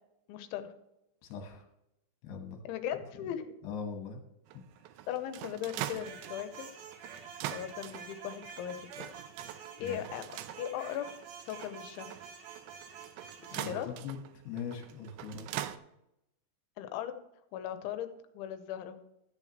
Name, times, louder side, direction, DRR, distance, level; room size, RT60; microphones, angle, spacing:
voice 1, 0.3-0.7 2.6-3.5 5.1-6.7 7.0-7.1 7.5-9.0 9.8-11.1 11.5-12.1 13.5-13.9 16.8-17.2 17.5-18.1 18.3-19.0, left 10 dB, 90° left, 9 dB, 3.1 m, -38 dB
voice 2, 1.2-1.6 2.2-2.6 3.6-4.2 9.8-10.0 13.5-14.2 14.4-15.6, left 6 dB, 70° left, 2 dB, 3.1 m, -41 dB
sound 1, 4.5-15.8, right 13 dB, 80° right, 2.6 m, -44 dB
sound 2, 5.7-13.7, right 7 dB, 65° right, 2.6 m, -48 dB
14.0 x 9.1 x 3.0 m, 0.86 s
omnidirectional pair, 5.4 m